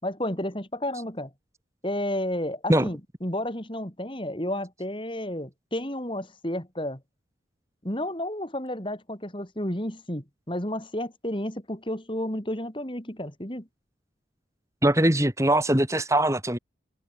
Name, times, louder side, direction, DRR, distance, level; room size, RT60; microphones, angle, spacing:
voice 1, 0.0-1.3 1.8-7.0 7.8-13.7, left 1 dB, 25° left, 3.7 m, -31 dB
voice 2, 14.8-16.6, right 1 dB, 15° right, 2.5 m, -21 dB
head